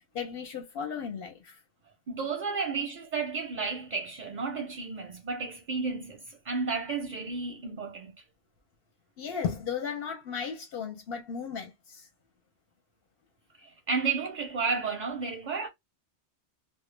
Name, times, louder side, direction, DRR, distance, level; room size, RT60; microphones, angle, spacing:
voice 1, 0.0-1.6 9.2-12.1, left 7 dB, 60° left, 0.8 m, -35 dB
voice 2, 2.1-8.1 13.6-15.7, right 4 dB, 55° right, 0.5 m, -32 dB
2.1 x 2.1 x 3.1 m
omnidirectional pair, 1.2 m